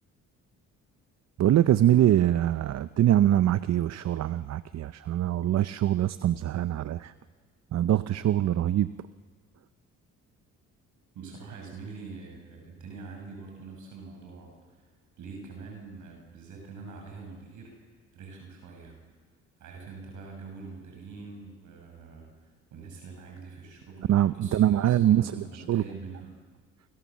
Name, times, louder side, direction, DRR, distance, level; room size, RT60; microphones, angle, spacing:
voice 1, 1.4-7.1 7.7-8.9 24.1-25.8, right 12 dB, 60° right, 14 dB, 0.7 m, -23 dB
voice 2, 11.1-14.8 15.2-17.8 18.1-19.0 19.6-26.3, right 4 dB, 75° right, 1 dB, 6.7 m, -44 dB
29.0 x 25.0 x 7.4 m, 1.4 s
cardioid pair, 90°, 30 cm